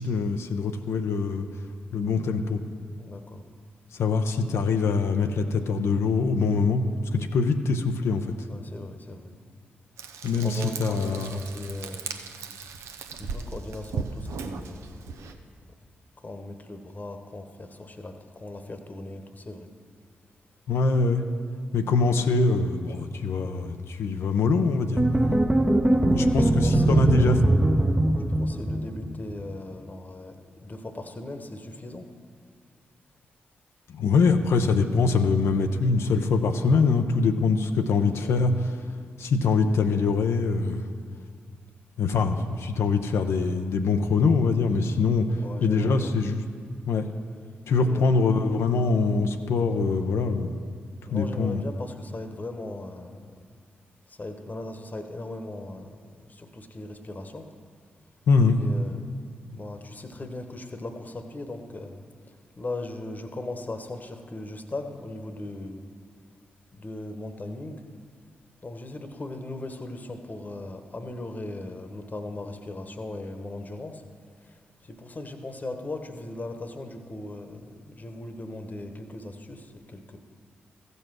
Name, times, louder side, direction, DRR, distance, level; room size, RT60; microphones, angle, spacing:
voice 1, 0.0-1.4 1.9-2.6 3.9-6.8 7.1-8.3 10.2-11.4 20.7-21.2 21.7-25.4 26.1-27.4 33.9-38.7 39.2-40.9 42.0-46.4 46.9-47.1 47.7-50.5 51.1-51.6 58.3-58.6, left 4 dB, 75° left, 6 dB, 0.6 m, -23 dB
voice 2, 3.0-3.4 8.5-9.3 10.3-12.1 13.2-15.3 16.2-19.7 25.9-27.4 28.4-30.3 30.6-32.1 37.9-38.5 45.3-46.1 47.9-48.2 51.0-53.3 54.1-55.9 56.1-57.5 58.6-59.2 59.5-62.0 62.6-65.9 66.7-67.8 68.6-74.0 75.0-80.2, left 2 dB, 35° left, 6 dB, 1.1 m, -38 dB
Frying (food), 10.0-15.3, right 5 dB, 80° right, 0.6 m, -37 dB
sound 1, 25.0-29.2, right 1 dB, 15° right, 0.8 m, -21 dB
14.5 x 5.4 x 6.1 m, 2.1 s
supercardioid pair, 40°, 5 cm